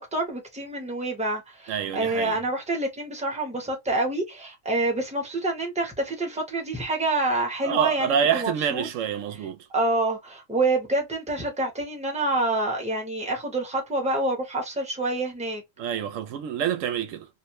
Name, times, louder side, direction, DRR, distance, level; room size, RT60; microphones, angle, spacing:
voice 1, 0.0-8.9 9.4-9.5 9.7-15.6, right 2 dB, 5° right, 0.7 m, -27 dB
voice 2, 1.7-2.4 7.6-9.6 15.8-17.3, right 8 dB, 80° right, 0.9 m, -27 dB
2.7 x 2.1 x 2.9 m
omnidirectional pair, 1.3 m